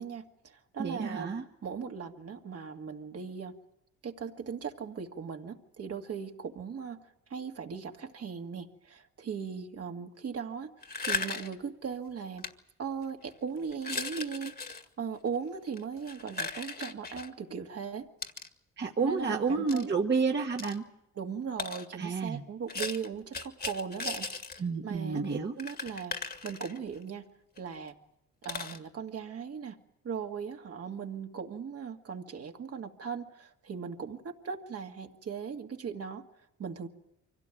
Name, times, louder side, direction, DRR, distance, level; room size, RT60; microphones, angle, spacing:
voice 1, 0.0-3.5 4.0-7.0 7.3-10.7 11.0-12.4 12.8-18.1 19.0-19.9 21.1-24.3 24.6-25.2 25.6-26.1 26.4-27.2 27.6-28.0 28.4-29.8 30.0-36.2 36.6-36.9, right 6 dB, 50° right, 3 dB, 2.3 m, -38 dB
voice 2, 0.8-1.4 18.8-20.8 22.0-22.4 24.6-25.5, right 4 dB, 35° right, 2 dB, 1.6 m, -30 dB
sound 1, 10.8-11.6 12.4-12.5 13.0-13.3 13.7-14.8 15.7-17.3 18.2-18.5 19.7-19.8 20.6-20.8 21.6-21.9 22.7-24.6 24.9-25.0 25.2-25.3 25.6-27.0 27.6-27.7 27.9-28.0 28.4-28.8, left 4 dB, 30° left, 2.0 m, -37 dB
24.5 x 17.0 x 9.3 m, 0.83 s
cardioid pair, 90°, 30 cm